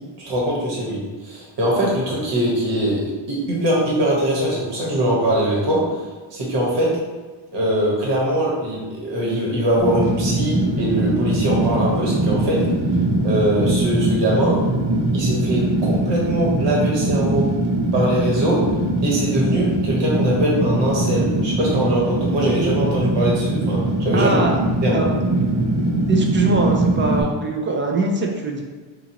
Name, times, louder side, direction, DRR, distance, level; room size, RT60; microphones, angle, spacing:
voice 1, 0.2-5.8 6.3-6.9 7.5-12.6 13.2-14.6 15.1-17.5 17.9-18.6 19.0-24.4 24.8-25.0, right 1 dB, 60° right, -4 dB, 1.3 m, -22 dB
Fire, 9.8-27.2, right 2 dB, 85° right, 0.9 m, -21 dB
voice 2, 24.1-24.6 24.9-25.2 26.1-28.6, right 3 dB, 25° right, 1 dB, 0.4 m, -22 dB
4.0 x 2.5 x 2.8 m, 1.3 s
cardioid pair, 135°, 47 cm